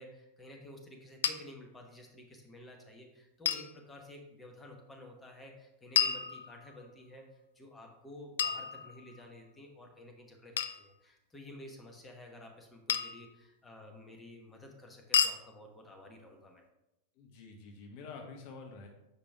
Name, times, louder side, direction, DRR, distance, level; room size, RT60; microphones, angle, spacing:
voice 1, 0.0-16.6, left 1 dB, 15° left, 2 dB, 1.1 m, -52 dB
sound 1, 1.2-1.4 3.4-3.7 5.9-6.8 8.4-9.3 10.6-10.8 12.9-13.3 15.1-15.4, left 8 dB, 65° left, 0.3 m, -31 dB
voice 2, 17.2-18.9, left 4 dB, 45° left, 2 dB, 1.0 m, -48 dB
6.9 x 5.1 x 3.5 m, 0.90 s
figure-of-eight pair, 90°, 0 cm